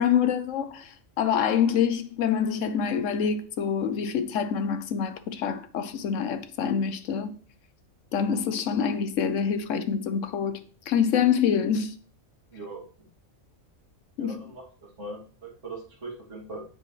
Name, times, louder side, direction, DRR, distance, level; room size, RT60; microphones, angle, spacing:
voice 1, 0.0-7.3 8.1-12.0 14.2-14.4, left 7 dB, 65° left, 1.0 m, -26 dB
voice 2, 12.5-12.8 14.2-14.6 15.0-16.6, right 2 dB, 55° right, 2.9 m, -40 dB
8.0 x 6.7 x 3.2 m
omnidirectional pair, 1.5 m